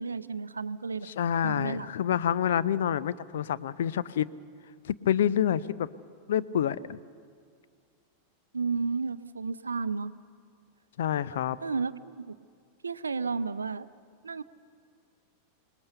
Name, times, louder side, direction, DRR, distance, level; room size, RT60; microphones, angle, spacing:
voice 1, 0.0-1.1 1.4-1.9 8.5-10.1 11.6-12.3 12.8-13.9 14.2-14.4, right 4 dB, 75° right, 15 dB, 0.6 m, -32 dB
voice 2, 1.0-4.3 4.8-5.9 6.3-7.0 11.0-11.6, left 9 dB, 60° left, 16 dB, 0.6 m, -27 dB
26.5 x 20.0 x 6.8 m, 2.2 s
figure-of-eight pair, 90°, 0 cm